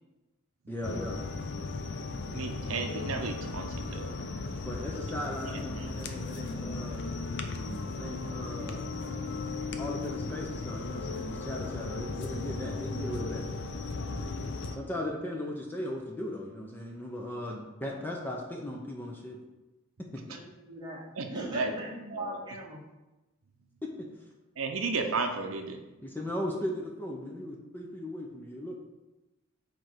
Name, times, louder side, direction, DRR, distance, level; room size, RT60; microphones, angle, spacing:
voice 1, 0.7-1.2 4.6-7.0 7.9-8.8 9.8-13.5 14.7-19.4 20.1-20.2 23.8-24.1 26.0-28.7, left 1 dB, 10° left, -1 dB, 0.8 m, -37 dB
sound 1, 0.8-14.8, left 3 dB, 55° left, 0.6 m, -36 dB
voice 2, 2.3-4.1 5.8-5.9 21.2-21.8 22.1-22.4 24.6-25.8, right 4 dB, 70° right, 5 dB, 0.6 m, -33 dB
voice 3, 20.3-22.8, right 1 dB, 20° right, -5 dB, 1.7 m, -41 dB
5.2 x 4.5 x 6.2 m, 1.0 s
head